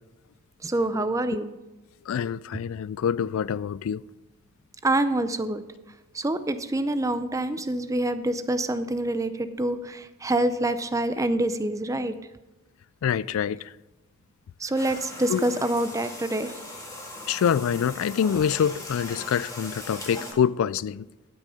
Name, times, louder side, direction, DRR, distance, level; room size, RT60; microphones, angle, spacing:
voice 1, 0.6-1.5 4.8-5.6 6.1-12.1 14.6-16.6, right 1 dB, 15° right, 0.5 m, -26 dB
voice 2, 2.1-4.0 13.0-13.7 15.3-15.5 17.3-21.1, left 8 dB, 70° left, 0.3 m, -26 dB
sound 1, 14.7-20.3, left 1 dB, 15° left, 1.8 m, -39 dB
12.0 x 6.3 x 5.5 m
head